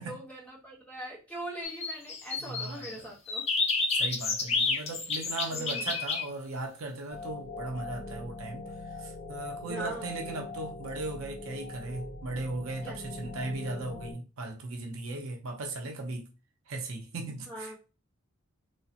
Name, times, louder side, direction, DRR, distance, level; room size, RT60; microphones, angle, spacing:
voice 1, 0.0-3.4 5.5-5.9 9.7-10.1 12.8-13.0 17.5-17.8, right 1 dB, 5° left, 0.9 m, -41 dB
sound 1, 1.6-2.9 3.3-6.2, left 4 dB, 30° left, 0.4 m, -30 dB
voice 2, 2.5-3.1 3.9-8.7 9.0-16.3 16.7-17.8, right 2 dB, 75° right, 0.5 m, -37 dB
sound 2, 7.1-14.1, left 3 dB, 70° left, 1.7 m, -42 dB
3.1 x 2.0 x 2.7 m
head